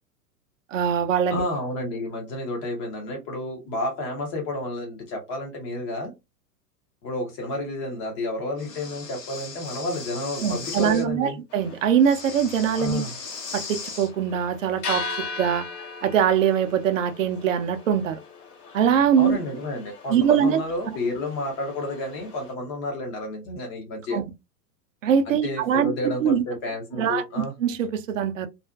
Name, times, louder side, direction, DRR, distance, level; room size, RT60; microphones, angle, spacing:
voice 1, 0.7-1.4 10.4-13.1 13.5-15.0 15.4-15.7 16.0-18.2 18.7-19.4 20.1-20.6 24.1-24.2 25.0-25.9 26.2-26.4 27.0-27.2 27.6-28.5, right 8 dB, 55° right, 0.5 m, -22 dB
voice 2, 1.3-6.1 7.0-11.4 12.8-13.1 19.2-24.2 25.3-27.5, left 1 dB, 20° left, 0.4 m, -31 dB
Breathing, 8.6-11.0 12.0-14.1, left 5 dB, 90° left, 0.7 m, -38 dB
sound 1, 11.5-22.5, left 3 dB, 65° left, 1.1 m, -39 dB
2.4 x 2.4 x 2.2 m
figure-of-eight pair, 100°, 48 cm